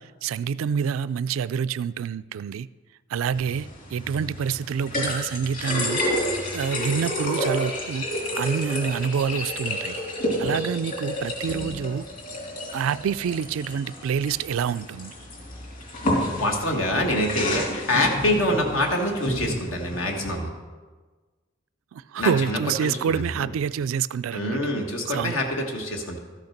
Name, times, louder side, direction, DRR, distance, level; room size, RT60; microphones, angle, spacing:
voice 1, 0.0-2.7 3.1-6.0 6.5-8.1 8.4-10.0 10.4-12.1 12.7-15.1 21.9-24.6 25.1-25.3, right 7 dB, 80° right, 0.3 m, -27 dB
sound 1, 3.3-20.4, left 1 dB, 45° left, 3.1 m, -30 dB
voice 2, 16.3-20.5 22.2-22.9 23.3-23.5 24.3-26.2, left 1 dB, 80° left, 1.6 m, -25 dB
13.0 x 6.5 x 5.8 m
head